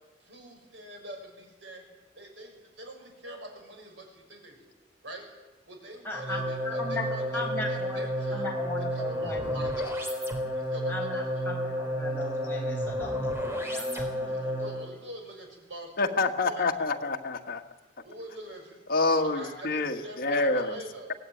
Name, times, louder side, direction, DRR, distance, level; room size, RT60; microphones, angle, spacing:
voice 1, 0.2-1.8 2.1-4.7 5.0-5.2 5.7-8.5 8.9-10.2 10.5-11.5 14.3-16.1 16.4-16.7 18.0-18.8 19.1-21.1, right 1 dB, 80° right, 2 dB, 6.8 m, -44 dB
voice 2, 6.0-6.4 6.6-9.6 10.9-14.6, left 2 dB, 15° left, -1 dB, 5.5 m, -37 dB
sound 1, 6.1-14.9, equal, 15° right, 3.4 m, -31 dB
voice 3, 16.0-17.6 18.9-20.7, left 3 dB, 50° left, 3 dB, 1.7 m, -27 dB
23.0 x 17.0 x 9.2 m, 1.1 s
head